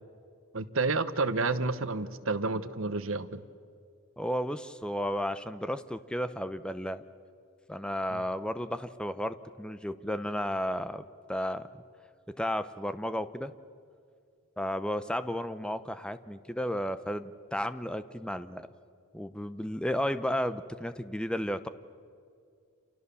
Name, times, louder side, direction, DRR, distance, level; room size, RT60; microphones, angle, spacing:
voice 1, 0.5-3.4 8.1-8.2, right 3 dB, 65° right, 12 dB, 1.1 m, -30 dB
voice 2, 4.2-7.0 7.7-11.7 12.4-13.5 14.6-18.7 19.1-21.7, equal, 5° left, 12 dB, 0.8 m, -33 dB
29.5 x 28.0 x 7.0 m, 2.3 s
head